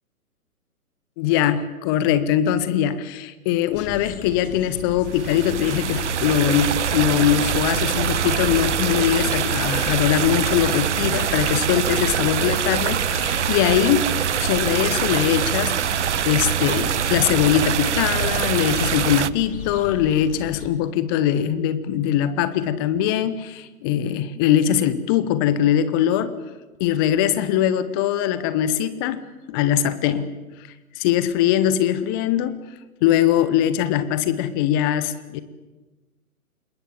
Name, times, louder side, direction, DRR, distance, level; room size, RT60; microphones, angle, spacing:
voice 1, 1.2-14.1 14.4-15.8 16.2-26.3 26.8-29.2 29.5-30.3 31.0-32.6 33.0-35.4, left 10 dB, 15° left, 15 dB, 0.8 m, -21 dB
sound 1, 3.7-20.7, left 7 dB, 35° left, 2.5 m, -36 dB
sound 2, 5.1-19.3, right 9 dB, 50° right, 0.7 m, -24 dB
27.0 x 22.0 x 7.2 m, 1.2 s
figure-of-eight pair, 125°, 45 cm